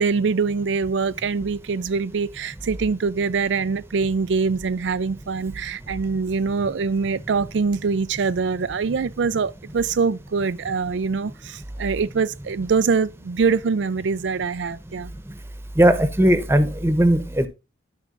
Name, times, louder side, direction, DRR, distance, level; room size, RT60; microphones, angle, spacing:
voice 1, 0.0-15.1, right 5 dB, 90° right, 0.4 m, -24 dB
voice 2, 15.8-17.5, right 1 dB, 15° right, 1.0 m, -18 dB
12.5 x 5.0 x 3.8 m
head